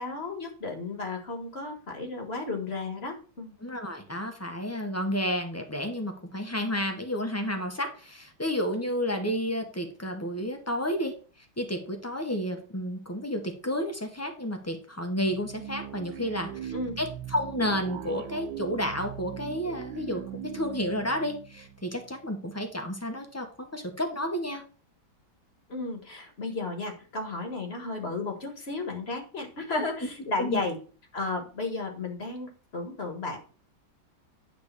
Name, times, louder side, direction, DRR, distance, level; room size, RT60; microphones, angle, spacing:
voice 1, 0.0-3.6 16.7-17.0 25.7-30.8 31.1-33.4, left 3 dB, 35° left, 4 dB, 1.5 m, -33 dB
voice 2, 3.6-11.1 11.6-20.2 20.5-23.5 23.7-24.6 30.4-30.6, equal, 10° left, 4 dB, 0.7 m, -31 dB
sound 1, 15.3-22.5, right 11 dB, 75° right, 1.3 m, -40 dB
9.1 x 3.4 x 6.6 m, 0.39 s
omnidirectional pair, 2.1 m